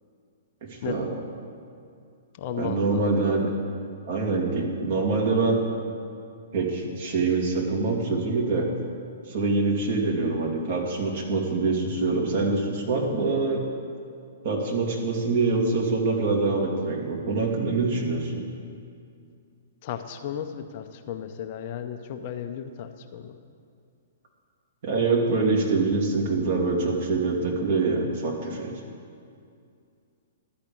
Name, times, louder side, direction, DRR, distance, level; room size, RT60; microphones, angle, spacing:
voice 1, 0.6-1.1 2.6-3.5 4.1-5.6 6.5-8.7 9.3-13.6 14.4-18.4 24.8-28.7, right 3 dB, 55° right, 0 dB, 2.1 m, -25 dB
voice 2, 2.4-3.0 19.8-23.4, left 9 dB, 45° left, 7 dB, 0.7 m, -34 dB
12.0 x 5.1 x 8.6 m, 2.4 s
figure-of-eight pair, 115°, 0 cm